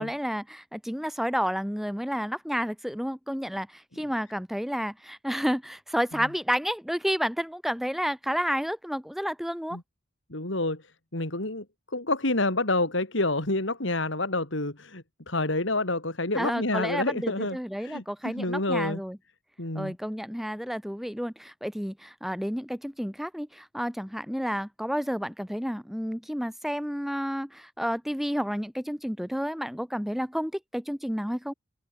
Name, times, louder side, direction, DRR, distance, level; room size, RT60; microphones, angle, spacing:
voice 1, 0.0-9.8 16.3-19.2 19.7-31.5, equal, ahead, 2.1 m, -31 dB
voice 2, 10.3-10.8 11.1-11.6 11.9-19.0 19.6-19.9, left 2 dB, 65° left, 3.5 m, -28 dB
open air
head